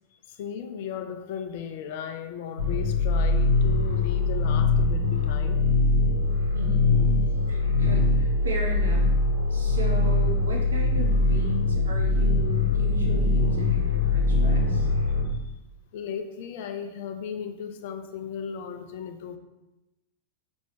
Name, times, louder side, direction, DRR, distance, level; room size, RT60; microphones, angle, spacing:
voice 1, 0.3-5.6 15.9-19.4, left 7 dB, 50° left, 7 dB, 0.4 m, -36 dB
sound 1, 2.6-15.2, left 2 dB, 85° left, 1.0 m, -22 dB
voice 2, 7.5-9.1 9.5-14.9, right 1 dB, 70° right, 0 dB, 0.7 m, -36 dB
5.3 x 3.1 x 3.2 m, 0.96 s
figure-of-eight pair, 90°, 0 cm